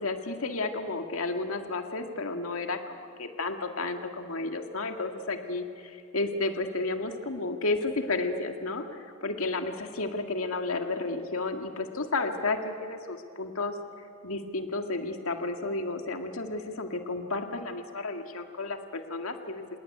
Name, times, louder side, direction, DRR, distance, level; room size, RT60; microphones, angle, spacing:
voice 1, 0.0-13.7 14.2-19.6, left 3 dB, 85° left, 5 dB, 2.0 m, -32 dB
27.0 x 19.0 x 9.6 m, 2.4 s
head